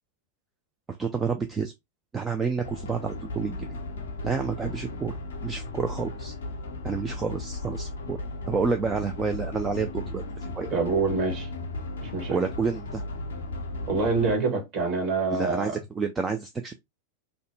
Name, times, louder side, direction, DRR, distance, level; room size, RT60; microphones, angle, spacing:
voice 1, 1.0-1.7 2.1-3.8 4.2-5.1 5.4-6.3 6.8-8.2 8.5-10.8 12.3-13.0 15.3-16.7, right 5 dB, 20° right, 0.3 m, -29 dB
sound 1, 2.6-14.3, left 2 dB, 65° left, 0.5 m, -36 dB
voice 2, 10.7-11.5 12.0-12.4 13.9-15.7, right 4 dB, 35° right, 1.1 m, -26 dB
2.6 x 2.0 x 3.2 m
figure-of-eight pair, 90°, 0 cm